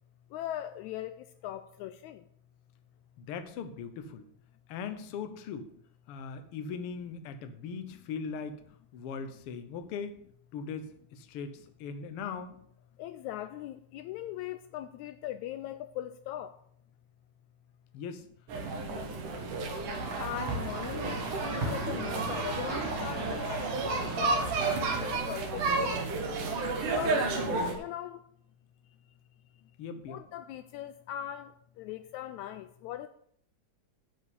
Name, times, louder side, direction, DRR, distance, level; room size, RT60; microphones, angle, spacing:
voice 1, 0.3-2.3 13.0-16.6 20.2-26.1 26.9-27.3 27.8-28.3 30.1-33.1, left 12 dB, 80° left, 1.8 m, -40 dB
voice 2, 3.2-4.2 4.7-5.7 6.1-8.6 8.9-10.2 10.5-12.6 17.9-18.3 27.2-27.6 29.8-30.2, left 6 dB, 65° left, 1.5 m, -39 dB
sound 1, 18.5-27.7, right 3 dB, 85° right, 3.1 m, -32 dB
sound 2, 19.9-25.2, right 2 dB, 60° right, 3.5 m, -38 dB
11.0 x 4.9 x 8.2 m
omnidirectional pair, 3.5 m